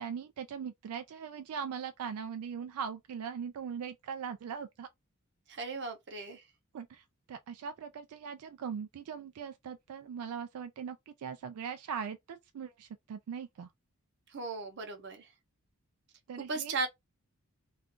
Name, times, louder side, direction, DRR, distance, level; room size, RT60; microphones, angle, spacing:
voice 1, 0.0-4.9 6.7-13.7 16.3-16.8, right 7 dB, 80° right, 0.3 m, -40 dB
voice 2, 5.5-6.4 14.3-15.3 16.5-16.9, right 3 dB, 50° right, 0.7 m, -36 dB
2.4 x 2.4 x 3.6 m
head